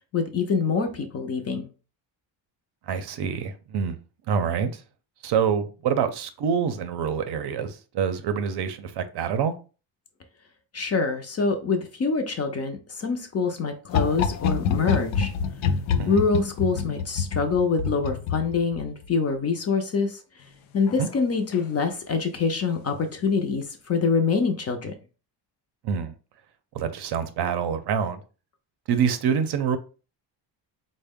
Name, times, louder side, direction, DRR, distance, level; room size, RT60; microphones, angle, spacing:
voice 1, 0.1-1.7 10.7-15.3 16.0-20.2 20.7-24.9, left 4 dB, 35° left, 0.4 m, -25 dB
voice 2, 2.9-4.0 4.3-4.8 5.2-9.6 16.0-16.2 21.0-21.1 25.8-26.1 26.7-28.2 28.9-29.8, right 7 dB, 60° right, 0.6 m, -26 dB
sound 1, 13.9-19.1 20.9-21.2 21.5-21.6, left 6 dB, 85° left, 0.6 m, -27 dB
4.3 x 2.1 x 3.5 m
cardioid pair, 170°, 46 cm